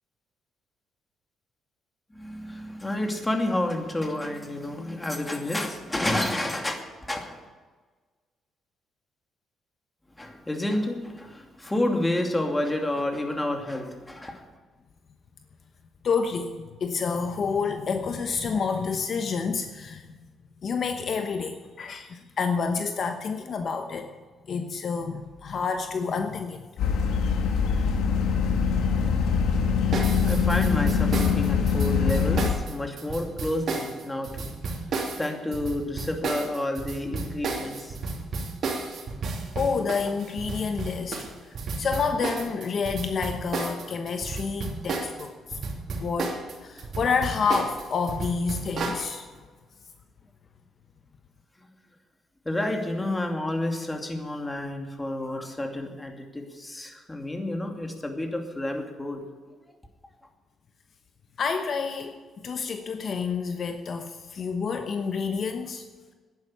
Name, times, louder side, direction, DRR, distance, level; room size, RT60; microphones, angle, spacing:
voice 1, 2.1-7.4 10.2-14.4 30.2-34.4 35.2-38.0 52.4-59.2, left 1 dB, 15° left, 3 dB, 2.5 m, -30 dB
voice 2, 16.0-20.2 20.6-24.1 24.5-26.7 39.5-45.6 46.0-46.3 46.6-49.3 61.4-62.2 62.4-65.8, left 5 dB, 55° left, 6 dB, 1.0 m, -29 dB
sound 1, 26.8-32.5, left 6 dB, 80° left, 1.8 m, -23 dB
sound 2, 29.9-45.2 45.5-49.0, right 4 dB, 60° right, 2.9 m, -32 dB
10.5 x 10.5 x 8.6 m, 1.4 s
cardioid pair, 90°, 0 cm